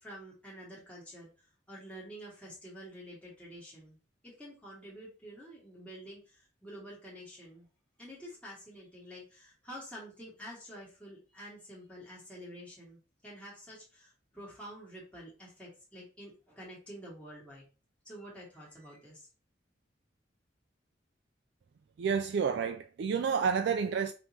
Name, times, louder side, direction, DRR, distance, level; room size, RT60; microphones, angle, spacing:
voice 1, 0.0-4.0 4.2-7.7 8.0-17.6 18.0-19.3, equal, 5° left, 1.5 m, -48 dB
voice 2, 22.0-24.1, right 6 dB, 65° right, 0.3 m, -29 dB
5.3 x 3.0 x 2.8 m
head